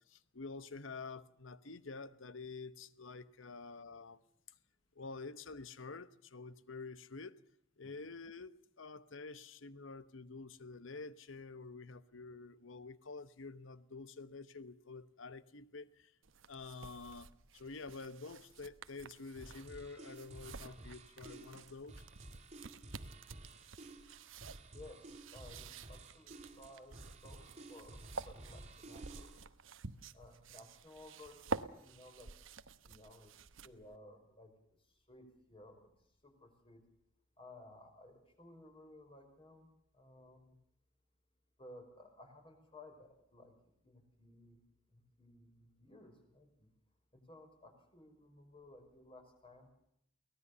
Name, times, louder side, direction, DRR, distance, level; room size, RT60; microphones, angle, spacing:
voice 1, 0.1-4.2 5.0-7.4 7.8-16.1 16.5-22.1, left 4 dB, 75° left, 1.0 m, -49 dB
sound 1, 16.2-34.0, right 3 dB, 75° right, 1.0 m, -49 dB
sound 2, 19.4-29.4, right 2 dB, 35° right, 2.4 m, -54 dB
voice 2, 24.7-26.9 27.2-28.0 28.3-29.4 30.1-32.3 32.8-33.3 33.6-34.5 35.1-35.9 36.2-36.8 37.4-39.7 39.9-40.5 41.6-43.5 43.8-44.6 44.9-46.7 47.1-49.7, left 1 dB, 30° left, 5.7 m, -57 dB
23.5 x 18.5 x 6.9 m
head